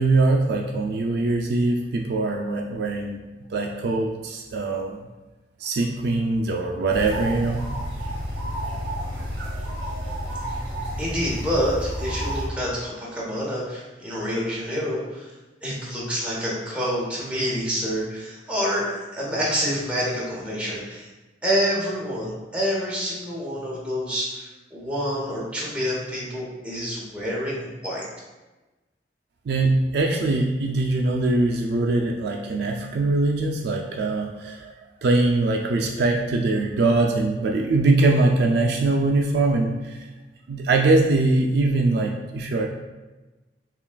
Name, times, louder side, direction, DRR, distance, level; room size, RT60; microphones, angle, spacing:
voice 1, 0.0-3.2 3.5-5.0 5.6-7.7 9.2-9.8 29.5-34.7 35.0-40.0 40.5-42.7, right 2 dB, 60° right, 1 dB, 0.3 m, -22 dB
sound 1, 6.9-12.5, equal, 30° right, 1.4 m, -30 dB
voice 2, 10.2-15.3 15.6-21.1 21.4-28.0, equal, 5° right, -6 dB, 0.9 m, -27 dB
5.7 x 2.3 x 2.2 m, 1.1 s
head